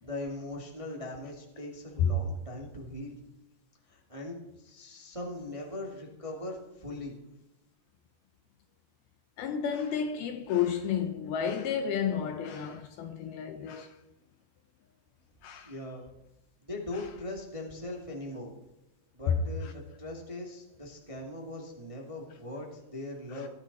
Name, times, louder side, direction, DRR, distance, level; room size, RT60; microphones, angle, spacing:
voice 1, 0.0-3.1 3.9-7.1 15.6-16.0 16.6-18.5 19.1-23.5, left 2 dB, 15° right, 1.4 m, -40 dB
voice 2, 9.4-13.9 15.4-15.7, left 8 dB, 75° left, 2.5 m, -31 dB
17.5 x 14.0 x 4.3 m
omnidirectional pair, 5.0 m